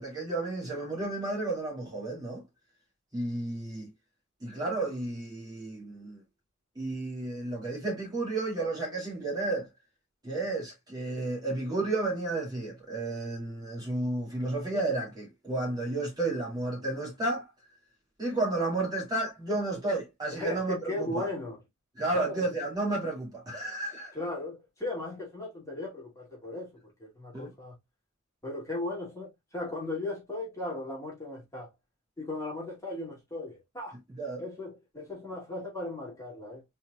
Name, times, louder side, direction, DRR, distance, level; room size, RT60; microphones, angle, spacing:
voice 1, 0.0-2.4 3.1-3.9 4.4-6.2 6.8-9.7 10.2-17.5 18.2-21.3 22.0-24.1 27.3-27.5 34.2-34.4, right 2 dB, 20° right, 2.1 m, -32 dB
voice 2, 20.3-21.6 22.1-22.4 24.1-27.8 28.4-31.7 32.2-34.0 34.4-36.6, left 2 dB, 15° left, 2.2 m, -37 dB
4.3 x 4.0 x 2.2 m
head